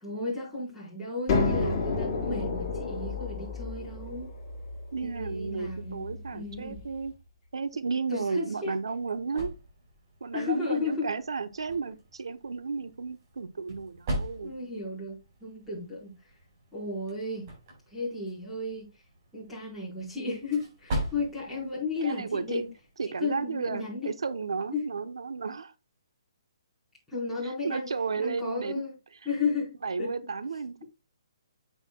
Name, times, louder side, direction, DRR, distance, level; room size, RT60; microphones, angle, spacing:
voice 1, 0.0-4.3 5.0-6.8 8.1-8.8 10.3-11.1 14.4-16.2 16.7-17.5 17.9-18.9 19.3-22.7 23.1-24.1 24.7-24.8 27.1-27.9 28.1-28.9 29.2-30.1, left 3 dB, ahead, 4.4 m, -34 dB
sound 1, 1.3-6.9, left 3 dB, 20° left, 4.7 m, -31 dB
voice 2, 4.9-7.1 7.5-9.5 10.2-14.5 22.0-22.6 23.0-25.7 27.4-28.8 29.8-30.8, right 4 dB, 85° right, 0.8 m, -33 dB
sound 2, 8.4-22.9, right 1 dB, 40° right, 4.8 m, -41 dB
9.9 x 8.0 x 2.2 m
hypercardioid pair, 160°, 3 cm